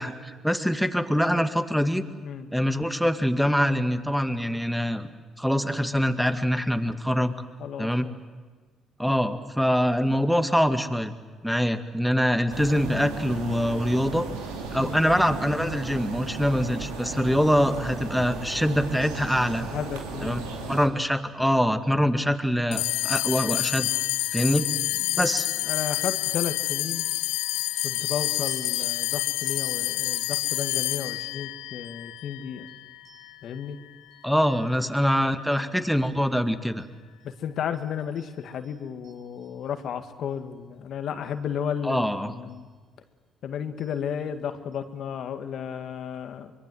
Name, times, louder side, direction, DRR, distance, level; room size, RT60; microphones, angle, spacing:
voice 1, 0.0-2.0 2.5-5.1 5.4-7.3 7.8-8.1 9.0-11.1 11.4-14.3 14.7-19.7 20.2-20.4 20.7-23.9 24.3-24.7 25.2-25.5 34.2-36.9 41.8-42.3, equal, ahead, 9 dB, 2.0 m, -24 dB
voice 2, 7.6-8.2 14.8-15.0 19.7-20.8 25.0-25.3 25.7-27.1 27.8-32.7 33.4-33.8 34.8-35.3 35.5-35.9 37.2-42.7 43.4-46.5, left 8 dB, 65° left, 8 dB, 1.8 m, -33 dB
sound 1, 12.5-20.9, right 4 dB, 90° right, 2.8 m, -35 dB
sound 2, 22.7-33.4, left 17 dB, 80° left, 0.8 m, -28 dB
sound 3, 27.4-33.7 34.1-35.1 35.5-36.1 36.8-36.9 37.2-37.3 37.7-39.7 40.7-40.8 41.2-41.3 42.5-42.7 43.8-44.0 44.3-44.4 44.7-44.8, right 3 dB, 60° right, 6.4 m, -54 dB
25.0 x 22.5 x 7.8 m, 1.4 s
hypercardioid pair, 60°, 0 cm